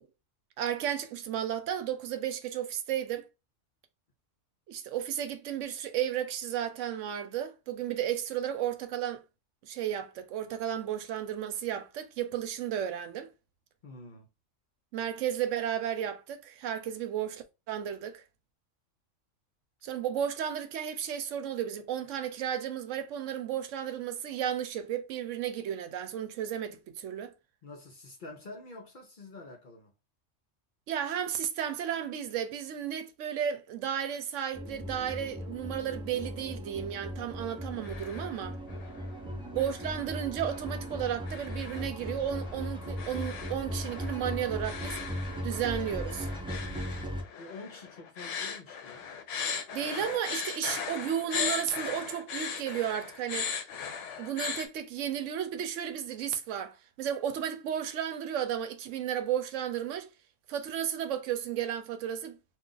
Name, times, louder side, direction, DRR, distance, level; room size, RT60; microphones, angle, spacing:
voice 1, 0.6-3.3 4.7-9.2 9.6-13.3 14.9-18.2 19.8-27.3 30.9-38.6 39.5-45.0 45.4-46.3 49.7-53.5 54.2-60.1 60.5-62.4, right 9 dB, 75° right, 0.9 m, -33 dB
voice 2, 13.8-14.3 27.6-29.9 39.2-39.6 46.5-47.0 47.4-49.1, left 2 dB, 50° left, 0.7 m, -47 dB
sound 1, 34.5-47.2, equal, 10° right, 0.3 m, -38 dB
sound 2, 37.5-38.4 38.7-39.1 39.6-54.7, left 6 dB, 75° left, 1.0 m, -39 dB
2.4 x 2.4 x 3.7 m
omnidirectional pair, 1.3 m